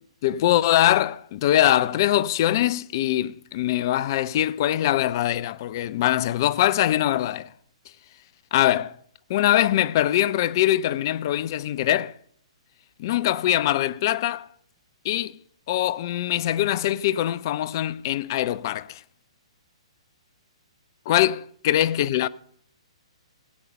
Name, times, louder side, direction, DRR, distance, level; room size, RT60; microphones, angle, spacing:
voice 1, 0.2-7.5 8.5-9.0 9.3-12.1 13.0-14.5 15.0-15.4 15.7-19.0 21.1-22.3, left 13 dB, 40° left, 0.4 m, -22 dB
17.0 x 8.3 x 5.3 m
figure-of-eight pair, 120°, 3 cm